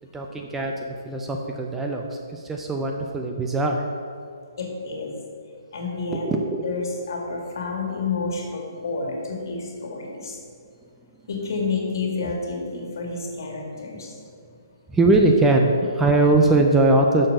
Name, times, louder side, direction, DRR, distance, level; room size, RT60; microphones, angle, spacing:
voice 1, 0.1-3.9 6.1-6.7 13.9-14.0 14.9-17.3, right 2 dB, 10° right, 2 dB, 0.5 m, -21 dB
voice 2, 4.6-5.1 5.7-6.3 6.6-10.4 11.3-14.2, left 4 dB, 60° left, 0 dB, 2.1 m, -29 dB
6.5 x 5.7 x 6.5 m, 2.3 s
hypercardioid pair, 155°, 2 cm